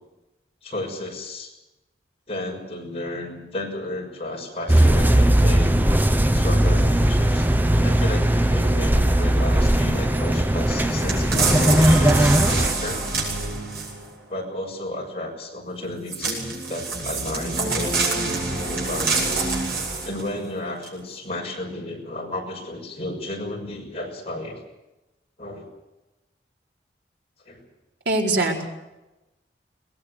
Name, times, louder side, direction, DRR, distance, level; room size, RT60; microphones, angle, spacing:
voice 1, 0.6-1.5 2.3-5.8 6.3-7.5 7.8-13.0 14.3-16.4 16.7-17.9 18.6-19.6 19.9-24.6 25.4-25.6 27.5-27.6, left 1 dB, 35° left, -1 dB, 6.3 m, -33 dB
sound 1, 4.7-12.7, right 1 dB, 10° right, 0.8 m, -18 dB
sound 2, 11.1-14.1 16.1-20.3 20.8-20.9, right 3 dB, 65° right, 7.9 m, -26 dB
voice 2, 28.0-28.7, right 2 dB, 85° right, -1 dB, 4.5 m, -22 dB
23.0 x 20.0 x 6.6 m, 1.0 s
head